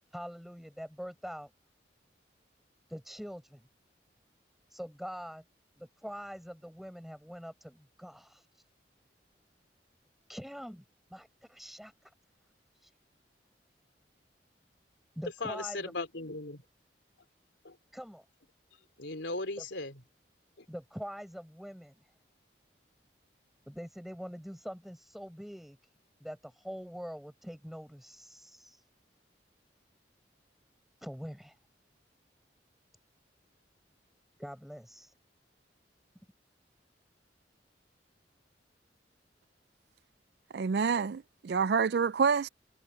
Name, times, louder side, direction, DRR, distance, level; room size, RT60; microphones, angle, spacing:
voice 1, 0.1-1.5 2.9-3.6 4.7-5.4 5.8-8.5 10.3-10.8 11.1-12.1 12.8-12.9 15.2-15.9 17.9-18.2 19.6-19.7 20.7-21.9 23.7-25.8 26.2-28.8 31.0-31.6 34.4-35.1, equal, ahead, 7.2 m, -44 dB
voice 2, 15.4-16.6 17.6-17.8 19.0-20.0 20.6-20.7, left 2 dB, 85° left, 3.7 m, -37 dB
voice 3, 40.5-42.5, right 6 dB, 60° right, 0.4 m, -27 dB
head